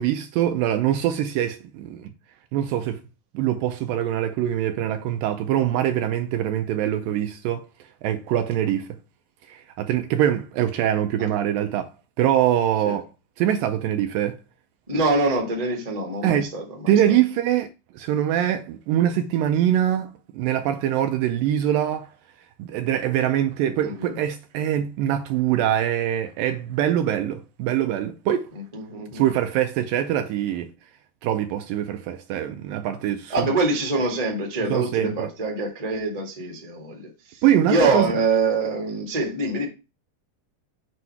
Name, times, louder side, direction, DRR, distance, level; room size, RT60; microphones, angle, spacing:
voice 1, 0.0-2.1 2.5-3.0 3.3-7.7 8.0-8.9 9.5-11.9 12.2-13.1 13.4-14.4 16.2-16.5 16.9-17.7 17.9-22.1 22.6-28.5 29.1-30.7 31.2-33.5 34.7-35.3 37.4-38.1, right 11 dB, 80° right, 2.0 m, -23 dB
voice 2, 14.9-16.9 23.8-24.2 28.7-29.2 33.3-37.1 37.7-39.6, right 3 dB, 65° right, 0.3 m, -24 dB
7.8 x 3.0 x 5.8 m
omnidirectional pair, 4.4 m